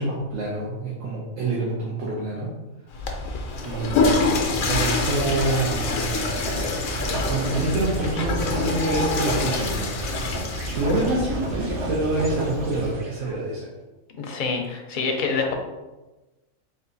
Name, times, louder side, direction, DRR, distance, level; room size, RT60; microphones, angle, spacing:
voice 1, 0.0-2.5 3.6-4.2 4.6-6.3 6.8-6.9 7.3-9.9 10.7-13.7, right 2 dB, 80° right, -6 dB, 1.3 m, -26 dB
Water / Toilet flush, 2.9-11.3, left 3 dB, 85° left, 1.1 m, -26 dB
Writing, 3.5-12.9, right 1 dB, 35° right, 0.5 m, -36 dB
sound 1, 3.9-13.3, equal, 55° right, 1.4 m, -32 dB
voice 2, 14.2-15.5, left 4 dB, 50° left, 2 dB, 0.6 m, -26 dB
4.0 x 2.5 x 3.9 m, 1.1 s
omnidirectional pair, 1.4 m